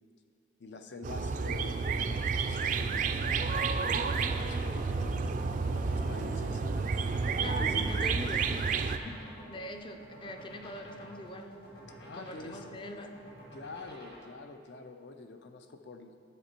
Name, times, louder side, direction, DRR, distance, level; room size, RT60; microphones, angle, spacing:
voice 1, 0.6-5.0 5.6-6.7 7.3-8.2 12.0-12.8 13.5-16.3, left 2 dB, 70° left, 7 dB, 0.6 m, -46 dB
sound 1, 1.0-9.0, right 4 dB, 45° right, 0.3 m, -30 dB
sound 2, 3.9-14.2, equal, 55° left, 2.0 m, -47 dB
voice 2, 7.4-8.8 9.0-11.5 12.1-13.2, left 2 dB, 25° left, 5 dB, 0.5 m, -43 dB
10.0 x 6.8 x 4.4 m, 2.4 s
head